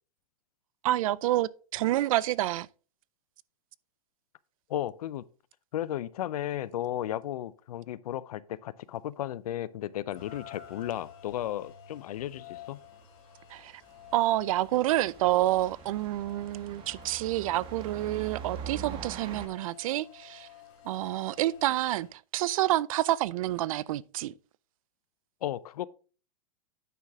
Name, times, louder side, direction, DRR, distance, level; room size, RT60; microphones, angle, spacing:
voice 1, 0.8-2.7 13.5-13.7 14.1-20.5 20.9-24.3, right 15 dB, 65° right, 0.4 m, -28 dB
voice 2, 4.7-5.2 5.7-12.8 25.4-25.9, left 12 dB, 90° left, 0.6 m, -34 dB
Rain, 10.1-22.1, left 9 dB, 30° left, 3.0 m, -51 dB
sound 1, 11.3-11.4 14.0-19.5, right 7 dB, 30° right, 1.2 m, -43 dB
9.4 x 5.7 x 3.5 m
supercardioid pair, 155°, 19 cm